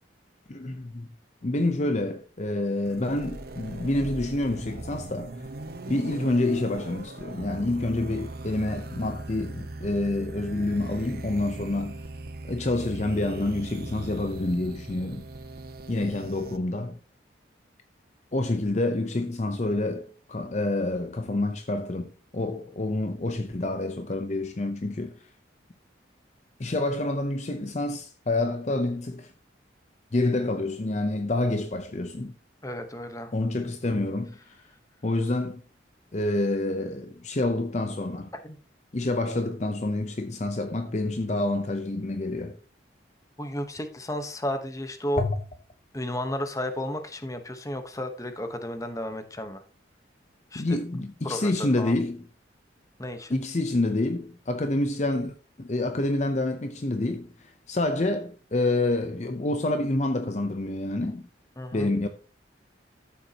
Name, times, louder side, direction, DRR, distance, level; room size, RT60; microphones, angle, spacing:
voice 1, 0.5-1.1 1.4-5.5 5.9-12.0 12.5-15.2 15.9-17.0 18.3-25.1 26.6-29.3 30.1-32.3 33.3-34.6 35.0-35.6 36.1-38.3 38.9-42.6 45.2-45.4 50.5-52.2 53.3-61.3 61.7-62.1, left 2 dB, 35° left, 0.6 m, -28 dB
sound 1, 2.8-16.6, right 2 dB, 50° right, 0.8 m, -39 dB
voice 2, 32.6-33.3 38.4-38.6 43.4-45.2 45.9-49.6 50.5-50.8 51.2-51.9 53.0-53.4 61.6-61.9, left 1 dB, 15° left, 1.0 m, -33 dB
13.0 x 7.1 x 2.8 m
head